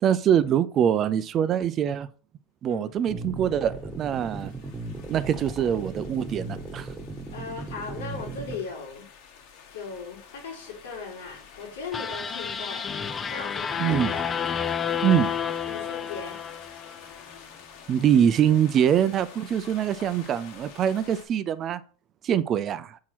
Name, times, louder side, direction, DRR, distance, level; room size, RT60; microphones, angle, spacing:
voice 1, 0.0-2.1 2.6-4.5 5.1-6.9 13.8-14.1 15.0-15.3 17.9-21.8 22.2-23.0, right 9 dB, 35° right, 0.5 m, -24 dB
sound 1, 3.1-8.6, right 2 dB, 15° right, 1.6 m, -37 dB
sound 2, 3.3-21.3, left 6 dB, 65° left, 1.7 m, -49 dB
voice 2, 7.3-9.0 9.7-12.9 13.3-14.3 15.7-16.4, left 5 dB, 85° left, 3.0 m, -38 dB
sound 3, 11.9-17.2, left 7 dB, 25° left, 0.5 m, -30 dB
4.7 x 4.3 x 6.0 m
hypercardioid pair, 110°, 0 cm